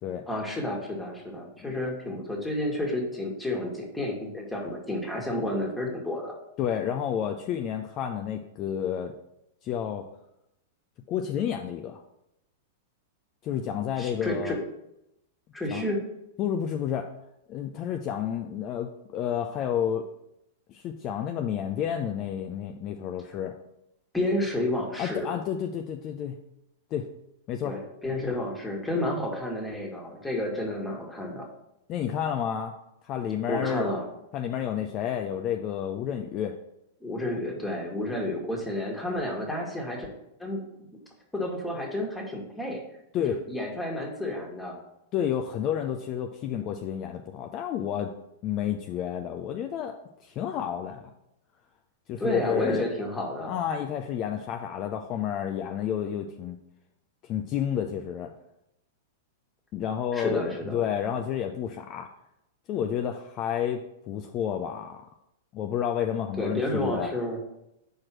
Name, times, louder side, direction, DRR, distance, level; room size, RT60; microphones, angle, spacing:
voice 1, 0.3-6.3 14.0-14.6 15.5-16.0 24.1-25.3 27.6-31.5 33.5-34.0 37.0-40.1 40.4-40.6 41.3-42.8 43.3-44.8 52.2-53.6 60.1-60.8 66.4-67.4, left 1 dB, 5° left, -1 dB, 1.7 m, -30 dB
voice 2, 6.6-9.1 9.6-10.1 11.1-12.0 13.4-14.6 15.7-15.8 16.4-17.1 17.5-20.1 20.7-23.5 25.0-26.4 26.9-27.1 27.5-27.8 31.9-32.7 33.0-33.9 34.3-36.6 43.1-43.4 45.1-48.1 48.4-51.1 52.1-52.9 53.4-56.6 57.3-58.3 59.7-62.1 62.7-65.0 65.5-67.1, left 9 dB, 40° left, 4 dB, 0.5 m, -30 dB
4.8 x 4.5 x 6.1 m, 0.84 s
hypercardioid pair, 105°, 0 cm